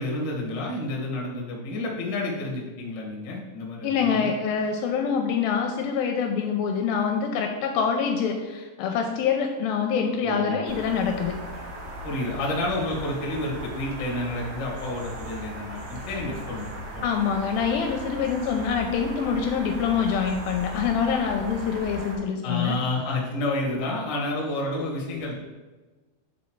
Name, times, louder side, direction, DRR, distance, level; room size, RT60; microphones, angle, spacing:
voice 1, 0.0-4.3 10.2-10.6 12.0-17.1 22.4-25.4, left 2 dB, 60° left, -3 dB, 1.1 m, -30 dB
voice 2, 3.8-11.3 17.0-22.8, left 6 dB, 80° left, 4 dB, 2.2 m, -25 dB
sound 1, 10.7-22.2, equal, 75° right, 3.4 m, -37 dB
7.3 x 4.2 x 4.5 m, 1.2 s
omnidirectional pair, 4.5 m